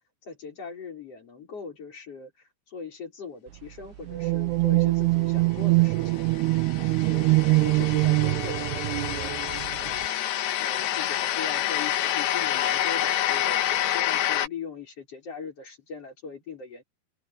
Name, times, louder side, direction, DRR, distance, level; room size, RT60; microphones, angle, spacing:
voice 1, 0.2-6.2 6.8-9.3 9.8-10.3 10.5-16.8, left 5 dB, 35° left, 6.5 m, -40 dB
sound 1, 4.1-10.1, right 21 dB, 85° right, 2.7 m, -23 dB
sound 2, 6.1-14.5, left 12 dB, 75° left, 3.2 m, -28 dB
omnidirectional pair, 4.7 m